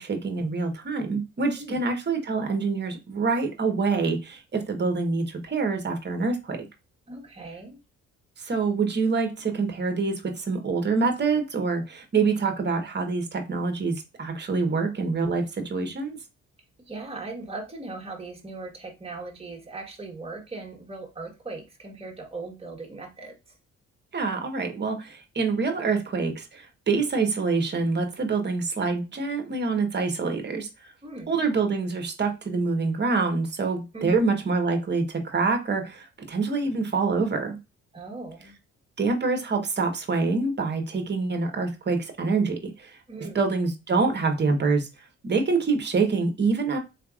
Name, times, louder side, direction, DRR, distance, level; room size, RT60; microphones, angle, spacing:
voice 1, 0.0-6.6 8.4-16.2 24.1-30.9 31.3-37.6 39.0-46.8, right 4 dB, 35° right, 6 dB, 1.1 m, -26 dB
voice 2, 7.1-7.8 16.8-23.5 31.0-31.4 33.9-34.3 37.9-38.5 43.1-43.4, right 3 dB, 20° right, 1 dB, 1.5 m, -39 dB
4.0 x 3.3 x 2.4 m, 0.26 s
cardioid pair, 90°, 30 cm